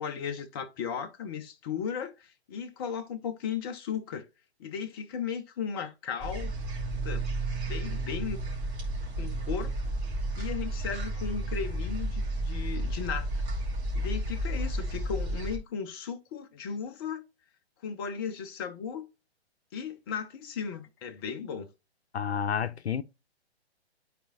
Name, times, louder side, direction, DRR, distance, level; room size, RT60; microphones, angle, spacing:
voice 1, 0.0-4.2 4.6-6.5 6.9-7.2 7.6-8.4 9.2-9.7 10.4-13.3 13.9-17.2 17.8-19.1 19.7-21.7, left 7 dB, 20° left, 0.5 m, -36 dB
sound 1, 6.2-15.6, right 1 dB, 25° right, 2.4 m, -32 dB
voice 2, 22.1-23.0, left 8 dB, 75° left, 0.6 m, -30 dB
12.0 x 4.1 x 2.4 m
figure-of-eight pair, 125°, 33 cm